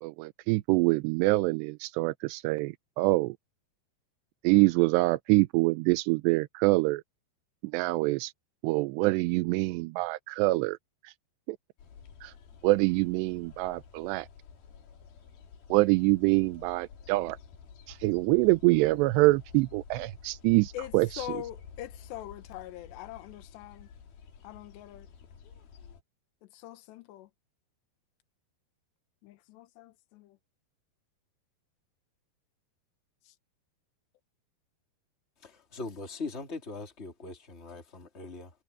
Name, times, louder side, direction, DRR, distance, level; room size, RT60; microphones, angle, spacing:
voice 1, 0.0-3.4 4.4-7.0 7.6-8.3 8.6-10.8 11.0-11.1 11.5-11.6 12.2-12.3 12.6-14.3 15.7-17.4 17.9-21.3, right 22 dB, 80° right, 2.7 m, -25 dB
sound 1, 11.8-26.0, left 6 dB, 60° left, 4.3 m, -51 dB
voice 2, 20.7-23.9 24.4-25.1 26.5-27.3 29.2-30.4 33.3-33.4, left 13 dB, 75° left, 3.3 m, -43 dB
voice 3, 35.4-38.5, left 3 dB, 15° left, 3.2 m, -40 dB
omnidirectional pair, 5.1 m